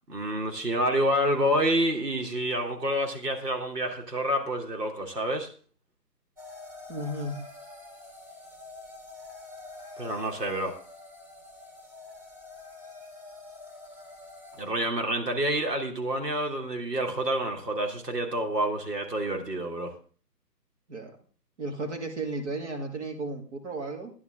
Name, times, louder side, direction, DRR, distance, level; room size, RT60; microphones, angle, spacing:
voice 1, 0.1-5.5 10.0-10.7 14.6-19.9, right 1 dB, 70° right, 2 dB, 3.0 m, -28 dB
sound 1, 6.4-14.6, left 2 dB, 15° right, 2.8 m, -46 dB
voice 2, 6.9-7.4 20.9-21.1 21.6-24.1, right 2 dB, 45° right, 3 dB, 2.3 m, -34 dB
12.5 x 11.0 x 3.7 m, 0.40 s
figure-of-eight pair, 145°, 50 cm